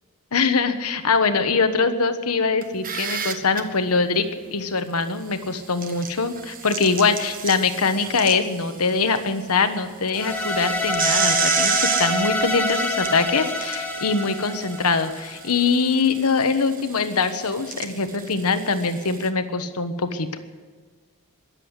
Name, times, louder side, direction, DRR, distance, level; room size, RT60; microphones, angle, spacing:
voice 1, 0.3-4.2 4.5-20.3, left 4 dB, 80° left, 9 dB, 1.2 m, -23 dB
sound 1, 2.6-3.6 5.5-9.2 9.5-9.6 10.1-19.3, right 7 dB, 40° right, 1.2 m, -30 dB
sound 2, 10.2-15.4, left 1 dB, 5° left, 1.7 m, -26 dB
21.5 x 7.8 x 8.0 m, 1.5 s
head